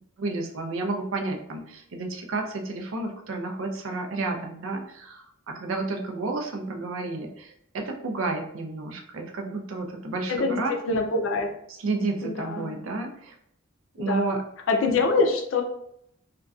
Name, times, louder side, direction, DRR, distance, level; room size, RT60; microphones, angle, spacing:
voice 1, 0.2-10.8 11.8-13.4 13.9-14.4, right 3 dB, 70° right, 3 dB, 0.4 m, -31 dB
voice 2, 10.9-11.5 12.2-12.7 14.0-14.3 14.7-15.6, left 3 dB, 65° left, 4 dB, 0.4 m, -24 dB
2.5 x 2.2 x 2.3 m, 0.72 s
head